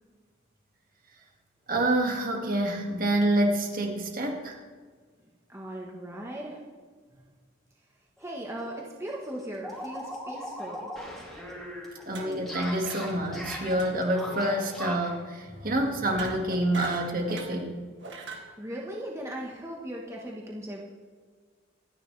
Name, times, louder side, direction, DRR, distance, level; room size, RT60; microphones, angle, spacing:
voice 1, 1.7-4.6 12.1-17.8, right 1 dB, 45° right, 1 dB, 2.0 m, -27 dB
voice 2, 5.5-6.6 8.2-10.9 15.6-15.7 18.6-20.8, right 1 dB, 15° right, -2 dB, 1.2 m, -38 dB
sound 1, 8.2-8.3 8.6-8.7 9.0-15.2, equal, ahead, 2.7 m, -39 dB
sound 2, 12.1-12.5 12.8-13.2 13.7-13.9 14.2-14.5 16.0-17.6 18.0-18.5, right 4 dB, 65° right, 2.0 m, -42 dB
26.0 x 10.0 x 3.3 m, 1.5 s
head